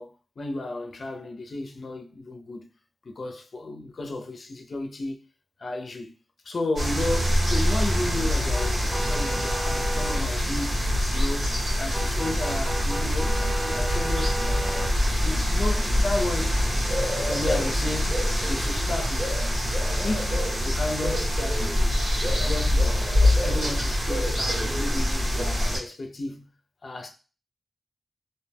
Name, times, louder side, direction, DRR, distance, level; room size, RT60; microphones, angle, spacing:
voice 1, 0.0-2.7 3.0-5.2 5.6-6.1 6.4-10.9 11.1-16.5 17.2-19.5 20.0-21.9 22.2-23.1 23.4-26.4 26.8-27.1, left 2 dB, 65° left, 0.5 m, -33 dB
sound 1, 6.8-25.8, equal, 85° right, 1.4 m, -24 dB
sound 2, 8.5-10.2 11.9-14.9, right 1 dB, 15° right, 0.4 m, -33 dB
2.6 x 2.1 x 3.3 m
cardioid pair, 55°, 0 cm